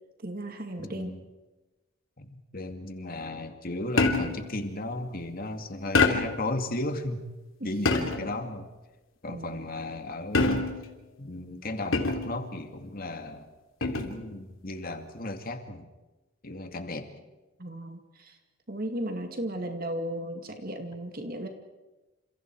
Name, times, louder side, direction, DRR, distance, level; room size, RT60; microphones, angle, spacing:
voice 1, 0.2-1.2 7.6-7.7 9.3-9.6 17.6-18.4 18.7-21.5, right 1 dB, 45° right, 5 dB, 2.3 m, -35 dB
voice 2, 0.8-1.2 2.2-7.2 7.6-8.7 9.2-10.7 11.2-13.5 13.8-15.9 16.4-17.1, left 2 dB, 45° left, 6 dB, 2.4 m, -35 dB
sound 1, 4.0-4.5 5.9-6.5 7.8-8.4 10.3-10.9 11.9-12.4 13.8-14.2, left 3 dB, 70° left, 3.2 m, -25 dB
29.5 x 28.0 x 4.8 m, 1.1 s
head